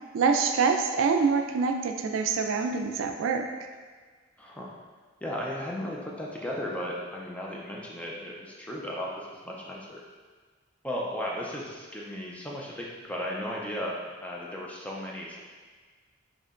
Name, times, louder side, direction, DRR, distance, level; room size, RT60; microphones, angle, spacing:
voice 1, 0.1-3.5, right 5 dB, 85° right, 5 dB, 0.3 m, -25 dB
voice 2, 4.4-4.7 5.2-10.0 10.8-15.4, equal, 5° left, -3 dB, 0.4 m, -35 dB
4.3 x 2.9 x 2.4 m, 1.5 s
head